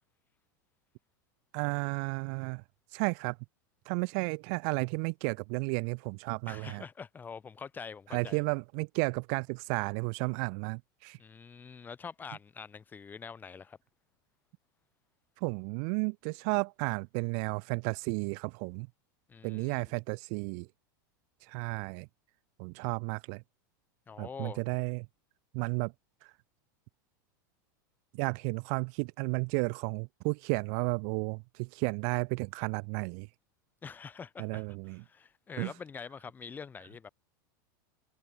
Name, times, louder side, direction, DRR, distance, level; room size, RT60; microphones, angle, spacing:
voice 1, 1.5-2.6 2.9-3.4 3.9-6.8 8.1-11.2 15.4-18.9 19.4-20.7 21.4-22.1 22.6-23.4 24.2-25.1 25.5-25.9 28.1-33.3 34.4-35.0 35.6-35.7, right 40 dB or more, 50° right, 0.5 m, -33 dB
voice 2, 6.5-8.4 11.2-13.8 19.3-19.9 24.1-24.7 33.8-37.1, left 6 dB, 15° left, 2.5 m, -45 dB
supercardioid pair, 145°, 11 cm